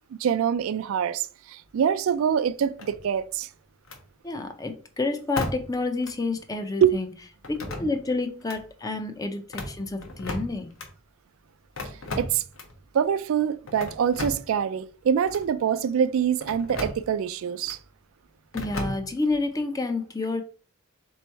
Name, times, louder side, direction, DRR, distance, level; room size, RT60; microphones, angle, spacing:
voice 1, 0.2-3.5 6.8-7.0 12.1-12.4 12.9-17.8, right 8 dB, 70° right, 0.3 m, -25 dB
sound 1, 2.8-3.3 3.8-4.0 5.4-5.8 6.0-6.1 7.4-8.1 8.4-8.6 9.4-10.9 11.8-12.8 13.7-14.6 15.3-15.5 16.4-17.1 17.6-17.8 18.5-19.3, left 1 dB, 70° left, 0.9 m, -35 dB
voice 2, 4.2-7.1 7.5-10.7 18.5-20.4, left 3 dB, 15° left, 0.4 m, -29 dB
3.5 x 3.1 x 4.4 m
head